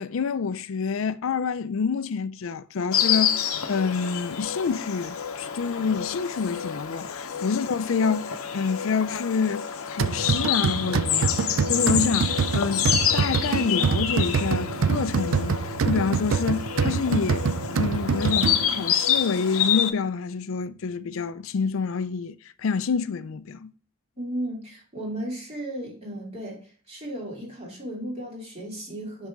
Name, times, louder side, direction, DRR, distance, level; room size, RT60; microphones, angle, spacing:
voice 1, 0.0-23.7, left 5 dB, 70° left, 0.4 m, -28 dB
Insect, 2.9-19.9, left 9 dB, 85° left, 0.8 m, -28 dB
sound 1, 10.0-18.9, right 6 dB, 65° right, 0.4 m, -26 dB
voice 2, 24.2-29.3, right 1 dB, 30° right, 2.8 m, -35 dB
6.0 x 5.6 x 3.6 m
head